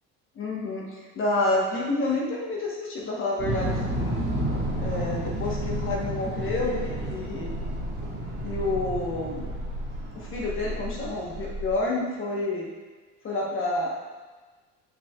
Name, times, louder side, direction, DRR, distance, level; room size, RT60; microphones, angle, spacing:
voice 1, 0.4-4.2 4.8-7.6 8.4-9.6 10.1-12.7 13.2-13.9, left 2 dB, 40° left, -2 dB, 1.1 m, -29 dB
sound 1, 3.4-11.4, right 1 dB, 30° right, 1.7 m, -32 dB
sound 2, 7.2-11.7, equal, 5° right, 1.1 m, -36 dB
8.7 x 5.7 x 2.3 m, 1.4 s
cardioid pair, 140°, 33 cm